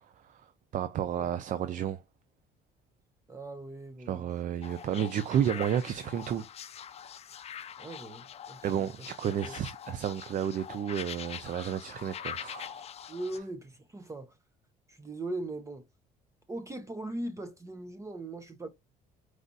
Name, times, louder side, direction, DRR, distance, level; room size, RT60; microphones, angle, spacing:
voice 1, 0.2-0.5 0.7-2.0 4.1-6.5 8.6-12.8, right 9 dB, 50° right, 0.5 m, -31 dB
voice 2, 3.3-4.3 7.8-8.9 9.4-9.6 13.1-14.4 14.9-15.8 16.5-18.7, right 2 dB, 20° right, 0.8 m, -39 dB
sound 1, 4.6-13.4, left 9 dB, 40° left, 0.5 m, -44 dB
4.8 x 2.4 x 4.0 m
cardioid pair, 110°, 17 cm